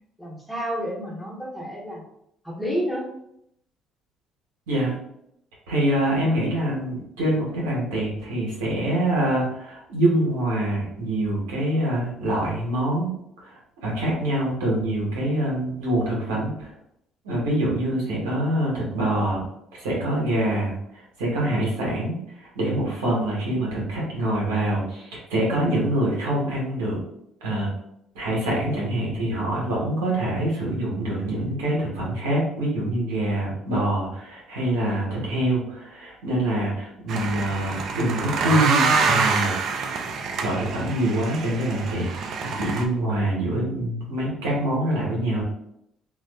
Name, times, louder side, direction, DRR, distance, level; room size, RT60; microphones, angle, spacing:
voice 1, 0.2-2.0 2.4-3.1, equal, 5° left, -4 dB, 1.0 m, -30 dB
voice 2, 5.7-13.1 13.4-16.7 17.2-19.4 19.7-27.0 27.4-27.7 28.1-39.5 40.4-42.1 42.6-45.4, right 1 dB, 90° right, -5 dB, 0.9 m, -25 dB
sound 1, 37.1-42.8, right 4 dB, 60° right, 0.3 m, -26 dB
2.4 x 2.2 x 2.3 m, 0.75 s
hypercardioid pair, 65°, 0 cm